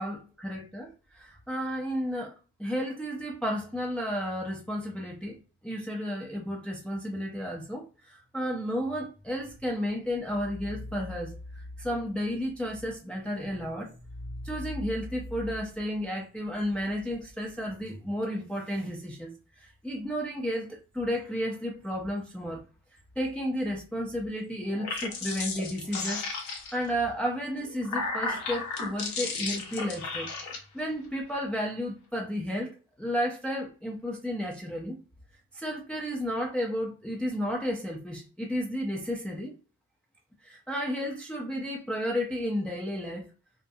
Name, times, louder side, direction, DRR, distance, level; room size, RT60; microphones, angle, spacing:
voice 1, 0.0-5.4 5.6-22.6 23.2-26.2 26.7-30.3 30.7-35.0 35.5-39.5 40.4-43.3, equal, 5° left, 0.5 m, -32 dB
sound 1, 24.7-26.9 27.6-30.6, left 4 dB, 70° left, 0.8 m, -34 dB
2.3 x 2.1 x 2.7 m
cardioid pair, 90°, 30 cm